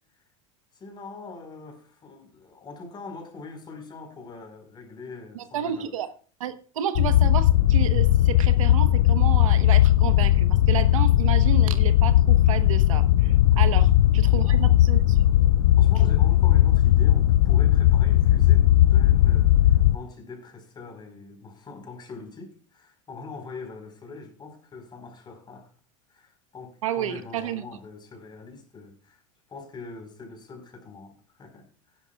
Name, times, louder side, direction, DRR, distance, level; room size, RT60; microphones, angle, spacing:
voice 1, 0.7-5.9 13.7-13.9 14.3-14.9 15.8-25.7 26.1-29.2 29.5-32.0, left 4 dB, 25° left, 4.6 m, -43 dB
voice 2, 5.3-6.1 6.4-15.2 26.8-27.6, right 10 dB, 85° right, 1.2 m, -31 dB
sound 1, 7.0-20.0, left 13 dB, 75° left, 0.5 m, -18 dB
17.0 x 10.5 x 2.4 m
hypercardioid pair, 110°, 17 cm